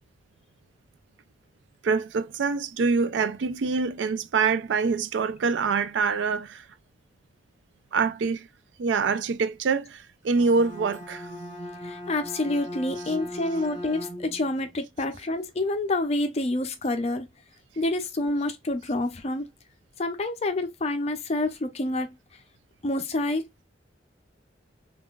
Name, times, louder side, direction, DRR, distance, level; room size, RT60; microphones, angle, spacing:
voice 1, 1.8-6.7 7.9-8.5 8.8-11.3, right 4 dB, 75° right, 0.4 m, -25 dB
Bowed string instrument, 10.2-14.5, left 1 dB, 15° right, 1.7 m, -38 dB
voice 2, 11.8-17.3 17.8-19.5 20.0-22.1 22.8-23.6, left 2 dB, 35° left, 0.4 m, -28 dB
3.7 x 2.4 x 2.3 m
head